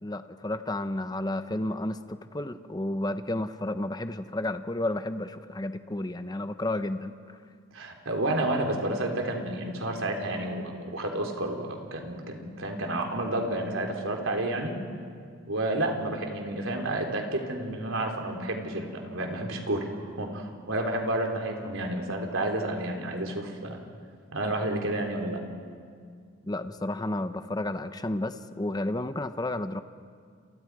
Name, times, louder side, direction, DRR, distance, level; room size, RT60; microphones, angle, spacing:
voice 1, 0.0-7.1 26.5-29.8, left 1 dB, 20° left, 10 dB, 0.7 m, -32 dB
voice 2, 7.7-14.8 15.5-23.8 24.3-25.4, right 1 dB, 85° right, 2 dB, 3.6 m, -30 dB
29.5 x 29.5 x 4.8 m, 2.1 s
head